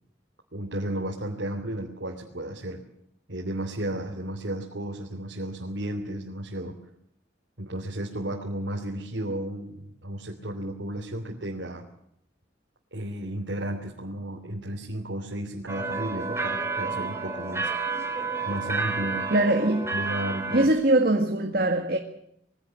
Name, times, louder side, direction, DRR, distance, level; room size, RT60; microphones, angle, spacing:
voice 1, 0.5-2.8 3.3-6.8 7.6-11.8 12.9-17.7 18.4-19.3 19.9-20.7, right 1 dB, 85° right, 3.1 m, -33 dB
sound 1, 15.7-20.7, right 4 dB, 15° right, 3.9 m, -30 dB
voice 2, 19.3-19.9 20.5-22.0, right 1 dB, 55° right, 1.8 m, -22 dB
22.5 x 17.0 x 9.1 m
head